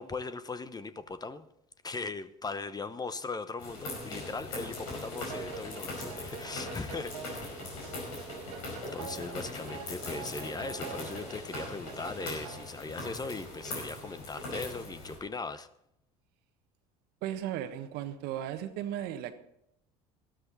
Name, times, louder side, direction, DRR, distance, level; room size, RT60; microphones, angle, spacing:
voice 1, 0.0-1.5 1.8-7.7 8.1-8.2 8.9-15.7, left 4 dB, 20° left, 0.9 m, -39 dB
sound 1, 3.6-15.2, left 2 dB, 85° left, 5.0 m, -40 dB
sound 2, 5.3-12.7, right 9 dB, 80° right, 1.6 m, -46 dB
voice 2, 17.2-19.3, right 11 dB, 65° right, 1.3 m, -36 dB
13.5 x 13.0 x 4.1 m
hypercardioid pair, 70°, 18 cm